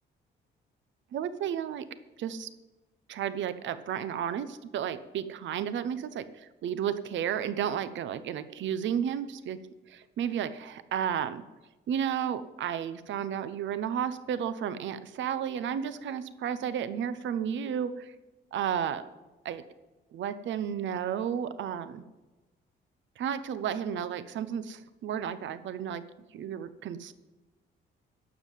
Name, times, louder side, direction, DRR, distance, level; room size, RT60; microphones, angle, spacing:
voice 1, 1.1-1.9 2.2-2.5 3.1-9.6 9.9-11.4 11.9-18.1 18.5-19.1 19.4-19.7 20.1-22.0 23.2-26.0 26.3-27.1, right 8 dB, 70° right, 13 dB, 0.8 m, -32 dB
12.0 x 7.4 x 9.2 m, 1.1 s
cardioid pair, 90°, 20 cm